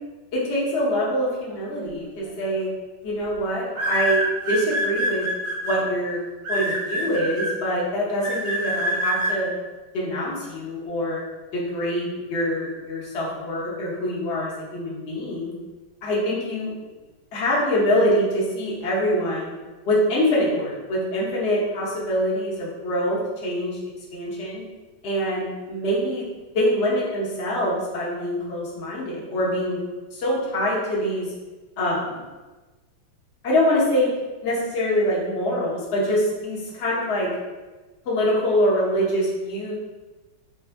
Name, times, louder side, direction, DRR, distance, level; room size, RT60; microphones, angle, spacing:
voice 1, 0.3-2.7 3.0-5.3 5.6-6.2 6.5-9.5 9.9-11.2 11.5-15.5 16.0-16.7 17.3-19.5 19.9-23.8 24.1-24.6 25.0-26.2 26.5-29.8 30.1-31.3 31.8-32.2 33.4-34.1 34.4-37.3 38.0-39.7, equal, 50° left, -6 dB, 0.8 m, -24 dB
sound 1, 2.2-2.5 3.7-5.8 6.4-7.5 8.2-9.3, right 1 dB, 55° right, 0.9 m, -25 dB
3.4 x 2.6 x 3.3 m, 1.2 s
omnidirectional pair, 2.2 m